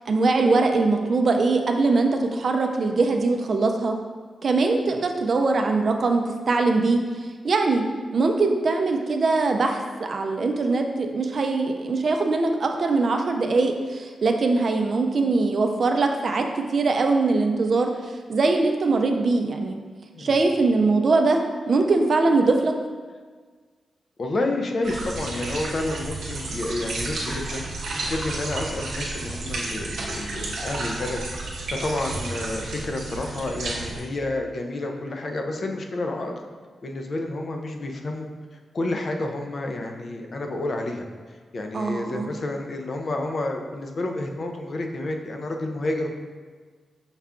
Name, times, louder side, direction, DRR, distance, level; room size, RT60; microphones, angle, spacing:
voice 1, 0.1-3.9 4.4-7.0 7.4-7.8 8.1-19.8 20.2-21.4 21.7-22.7 41.7-42.2, right 3 dB, 50° right, 4 dB, 0.4 m, -22 dB
voice 2, 24.2-27.6 28.0-31.2 31.5-36.4 36.8-38.3 38.7-46.1, left 2 dB, 50° left, 3 dB, 0.4 m, -30 dB
sound 1, 24.8-34.0, right 2 dB, 80° right, 0.8 m, -32 dB
5.5 x 2.3 x 3.6 m, 1.5 s
wide cardioid pair, 110°, 0 cm